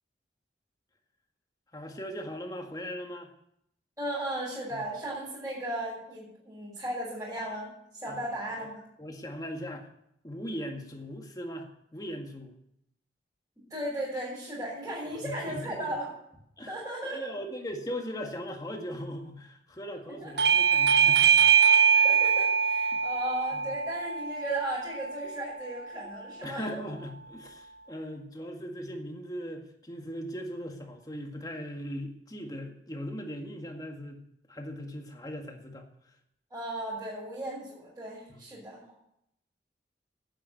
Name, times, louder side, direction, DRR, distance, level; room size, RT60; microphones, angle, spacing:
voice 1, 1.7-3.3 4.7-4.8 8.1-8.2 9.0-9.9 10.2-12.5 15.0-16.0 16.6-16.7 17.0-21.5 22.9-23.0 23.5-23.7 26.4-34.2 34.5-35.9 38.3-38.4, equal, 20° left, 3 dB, 1.8 m, -39 dB
voice 2, 4.0-7.7 7.9-8.8 13.7-16.1 16.6-17.2 20.2-20.4 21.9-26.6 36.5-38.8, right 1 dB, 20° right, -9 dB, 6.3 m, -36 dB
Bell / Doorbell, 20.4-25.6, right 7 dB, 60° right, 0.6 m, -23 dB
11.0 x 9.2 x 9.1 m, 0.76 s
head